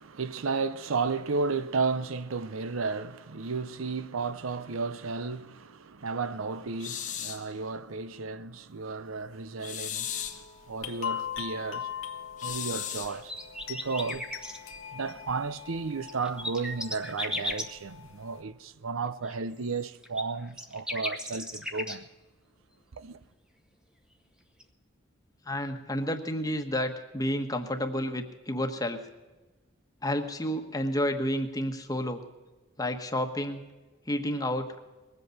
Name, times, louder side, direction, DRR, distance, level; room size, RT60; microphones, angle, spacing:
voice 1, 0.0-11.9 12.4-13.3 13.7-14.3 14.9-22.1 22.9-23.2, right 4 dB, 80° right, 0.7 m, -33 dB
sound 1, 6.8-7.5 9.6-10.5 12.4-13.2, left 10 dB, 40° left, 1.0 m, -36 dB
sound 2, 10.0-18.4, left 9 dB, 85° left, 1.4 m, -41 dB
sound 3, 13.1-14.6 15.9-17.7 19.2-22.0 24.6-24.7, left 1 dB, 5° right, 0.9 m, -36 dB
voice 2, 25.5-29.0 30.0-32.2 32.8-33.6 34.1-34.7, equal, 20° left, 1.2 m, -30 dB
21.0 x 8.2 x 6.6 m
head